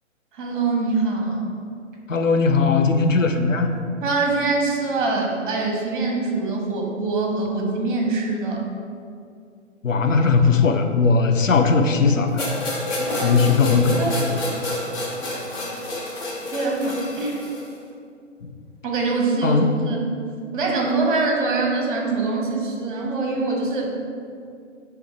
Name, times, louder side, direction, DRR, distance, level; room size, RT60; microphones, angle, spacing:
voice 1, 0.3-1.4 4.0-8.7 13.0-13.4 13.8-14.2 16.5-17.4 18.8-20.1 20.5-23.9, right 3 dB, 40° right, -1 dB, 1.4 m, -24 dB
voice 2, 2.1-3.7 9.8-12.4 13.2-14.1 14.5-14.8 19.4-19.7, left 4 dB, 85° left, 6 dB, 0.7 m, -18 dB
sound 1, 12.4-17.7, left 1 dB, 10° left, 0.6 m, -29 dB
9.9 x 3.5 x 3.2 m, 2.4 s
figure-of-eight pair, 130°, 38 cm